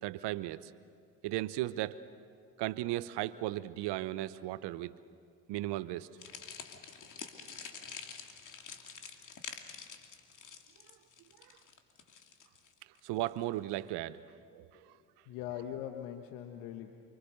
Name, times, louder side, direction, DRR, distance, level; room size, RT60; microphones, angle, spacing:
voice 1, 0.0-0.7 1.2-2.0 2.6-4.9 5.5-6.1 11.4-11.5 13.0-14.2 14.5-14.7, right 15 dB, 60° right, 16 dB, 0.9 m, -36 dB
sound 1, 6.2-13.4, left 6 dB, 40° left, 2.7 m, -47 dB
voice 2, 15.2-16.9, left 10 dB, 70° left, 6 dB, 1.5 m, -42 dB
29.0 x 25.0 x 6.7 m, 2.4 s
hypercardioid pair, 60°, 47 cm